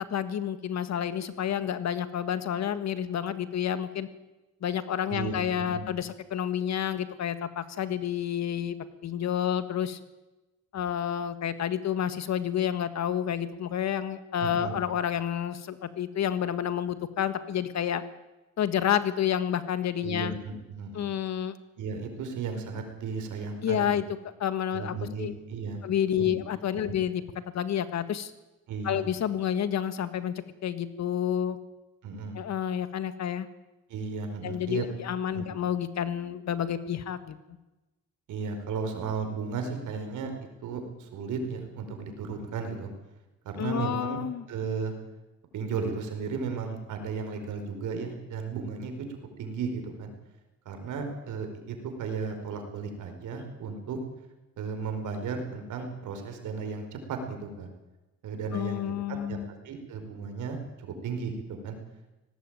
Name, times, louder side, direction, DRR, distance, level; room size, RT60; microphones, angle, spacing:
voice 1, 0.1-4.1 4.6-8.8 9.0-10.0 10.7-18.0 18.6-20.3 20.9-21.5 23.6-24.0 24.4-25.3 25.8-27.2 27.5-28.3 28.8-30.3 30.6-31.6 32.3-33.5 34.4-37.4 43.6-44.4 58.5-59.5, left 9 dB, 60° left, 12 dB, 1.7 m, -29 dB
voice 2, 5.1-5.9 14.4-14.8 20.0-21.1 21.8-23.9 24.7-25.8 26.1-26.4 26.8-26.9 28.7-29.0 32.0-32.4 33.9-34.8 35.3-35.4 38.3-40.3 40.6-42.9 43.4-44.2 44.5-44.9 45.5-49.1 49.4-50.1 50.6-54.0 54.6-57.7 58.2-58.8 59.1-59.4 59.6-61.8, right 5 dB, 80° right, 5 dB, 4.9 m, -35 dB
18.5 x 18.5 x 8.9 m, 1.1 s
cardioid pair, 90°, 30 cm